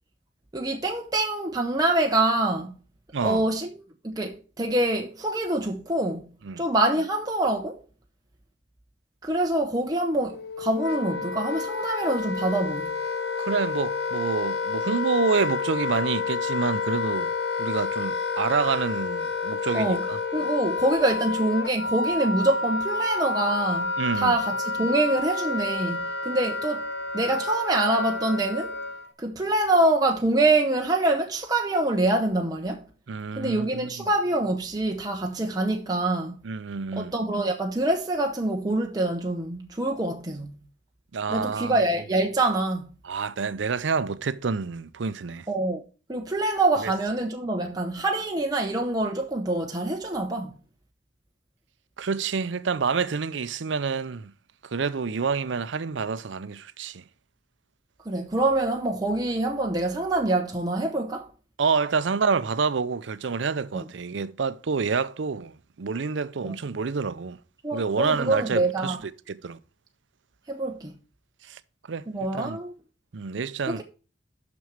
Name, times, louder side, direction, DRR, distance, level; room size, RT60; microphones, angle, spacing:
voice 1, 0.5-2.7 3.2-3.7 4.0-6.3 6.6-7.8 9.2-12.9 19.7-20.0 20.3-26.8 27.1-28.8 29.2-32.8 33.4-36.4 36.9-40.5 41.3-42.9 45.5-45.8 46.1-50.5 58.0-61.3 63.7-63.8 66.4-66.5 67.6-69.0 70.5-70.9 72.1-72.7 73.7-73.8, right 2 dB, 20° right, 0.8 m, -25 dB
voice 2, 3.1-3.5 6.4-6.6 13.4-17.3 17.6-20.2 24.0-24.3 33.1-34.1 36.4-37.1 41.1-41.8 43.0-45.5 46.8-46.9 52.0-54.3 54.6-57.0 61.6-67.4 67.7-69.0 69.3-69.6 71.4-71.6 71.9-72.1 72.3-72.6 73.1-73.8, right 5 dB, 80° right, 0.6 m, -28 dB
Wind instrument woodwind instrument, 10.3-29.1, left 4 dB, 60° left, 0.9 m, -29 dB
6.3 x 6.1 x 6.6 m
head